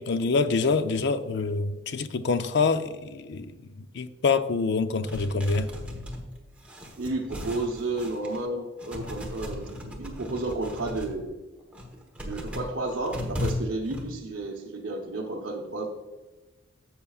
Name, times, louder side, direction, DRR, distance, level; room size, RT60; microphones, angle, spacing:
voice 1, 0.0-3.5 3.8-5.7, left 4 dB, 55° left, 0.5 m, -26 dB
sound 1, 5.1-8.5 8.8-11.2 11.6-14.0, left 1 dB, 5° right, 1.1 m, -36 dB
voice 2, 7.0-11.3 12.2-15.9, right 2 dB, 60° right, 0.9 m, -32 dB
12.0 x 7.4 x 2.4 m
head